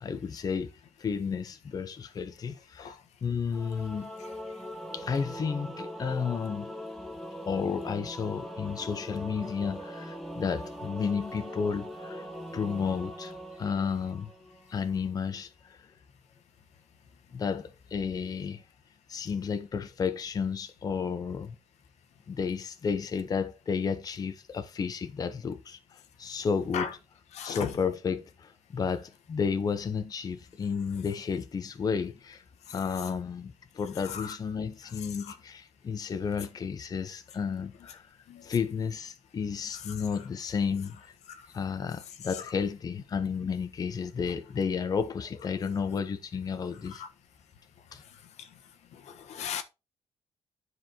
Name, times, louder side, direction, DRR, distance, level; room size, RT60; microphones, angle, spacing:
voice 1, 0.0-0.7 1.0-2.9 3.2-4.1 4.9-6.7 7.4-12.3 12.5-13.3 13.6-14.3 14.7-15.8 17.3-18.6 19.1-21.6 22.3-27.0 27.4-32.4 32.7-38.1 38.4-41.1 41.5-47.0 47.9-48.0, left 6 dB, 35° left, 0.8 m, -32 dB
Singing / Musical instrument, 3.5-14.8, equal, ahead, 1.2 m, -41 dB
voice 2, 27.3-27.7 34.1-34.2 38.3-38.4 49.3-49.6, left 8 dB, 85° left, 1.3 m, -33 dB
10.0 x 4.8 x 4.4 m
cardioid pair, 150°, 11 cm